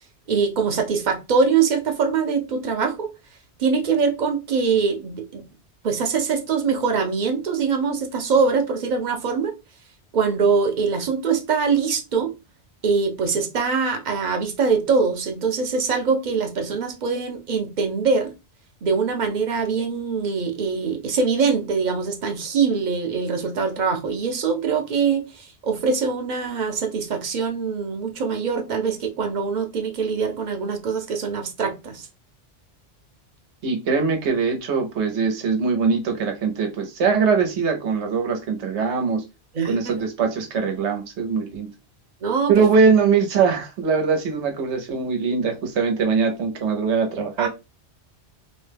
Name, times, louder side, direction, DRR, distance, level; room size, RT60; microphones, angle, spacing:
voice 1, 0.3-3.1 3.6-5.4 5.8-9.5 10.1-12.3 12.8-18.3 18.8-32.1 39.5-39.9 42.2-42.7 47.4-47.5, right 5 dB, 50° right, 0.7 m, -23 dB
voice 2, 33.6-39.2 39.6-41.7 42.5-47.5, right 5 dB, 90° right, 1.1 m, -22 dB
3.0 x 2.1 x 3.2 m
omnidirectional pair, 1.1 m